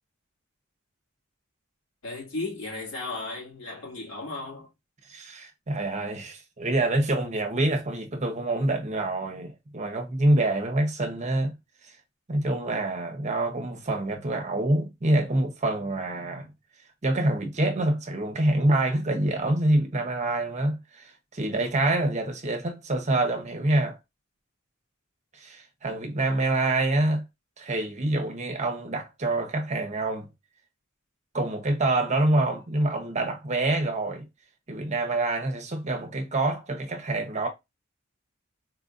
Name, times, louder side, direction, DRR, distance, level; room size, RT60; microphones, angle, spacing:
voice 1, 2.0-4.7, left 2 dB, 80° left, 2.1 m, -35 dB
voice 2, 5.1-11.5 12.3-16.5 17.0-24.0 25.3-27.2 27.6-30.3 31.3-34.3 34.7-37.5, right 2 dB, 35° right, 0.8 m, -26 dB
4.2 x 2.7 x 2.5 m
head